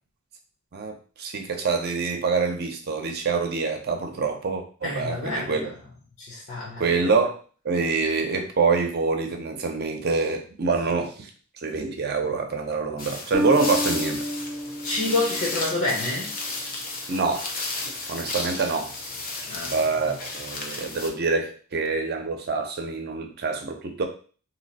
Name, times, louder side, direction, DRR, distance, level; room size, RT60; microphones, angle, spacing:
voice 1, 0.7-5.7 6.8-7.4 7.6-11.3 11.6-14.2 17.1-17.5 18.1-18.9 19.7-24.0, right 4 dB, 50° right, 4 dB, 0.6 m, -26 dB
voice 2, 4.8-5.5 6.2-6.8 14.8-16.3 19.5-19.7, left 2 dB, 65° left, -4 dB, 0.9 m, -28 dB
sound 1, 13.0-21.1, left 3 dB, 45° left, 0.7 m, -33 dB
Bass guitar, 13.3-16.4, equal, 10° right, 0.5 m, -30 dB
2.8 x 2.0 x 4.0 m, 0.40 s
head